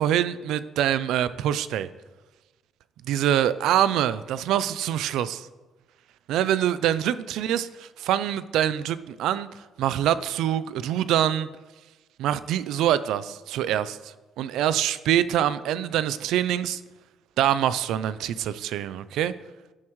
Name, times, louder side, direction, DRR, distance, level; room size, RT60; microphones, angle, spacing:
voice 1, 0.0-1.9 3.1-5.5 6.3-11.5 12.2-16.8 17.4-19.3, right 11 dB, 90° right, 15 dB, 0.4 m, -25 dB
11.0 x 11.0 x 3.1 m, 1.2 s
cardioid pair, 175°, 0 cm